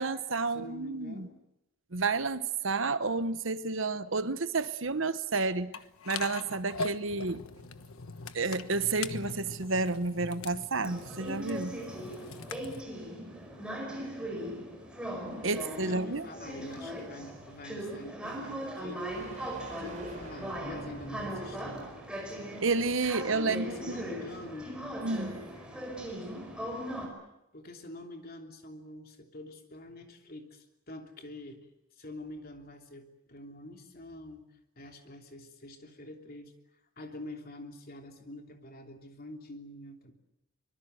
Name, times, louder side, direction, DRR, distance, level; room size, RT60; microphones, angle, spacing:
voice 1, 0.0-1.3 1.9-5.7 6.1-7.4 8.3-11.8 15.4-16.3 22.6-24.0 25.0-25.5, right 3 dB, 65° right, 1.2 m, -30 dB
voice 2, 0.5-1.4 15.5-19.1 19.7-21.9 23.5-24.8 27.5-34.4 34.8-40.1, left 1 dB, 45° left, 3.2 m, -46 dB
sound 1, 5.7-12.8, left 3 dB, 85° left, 1.2 m, -41 dB
sound 2, 7.5-22.0, right 1 dB, 35° right, 7.3 m, -51 dB
sound 3, 10.8-27.1, equal, 5° right, 5.3 m, -39 dB
24.5 x 23.0 x 8.0 m
head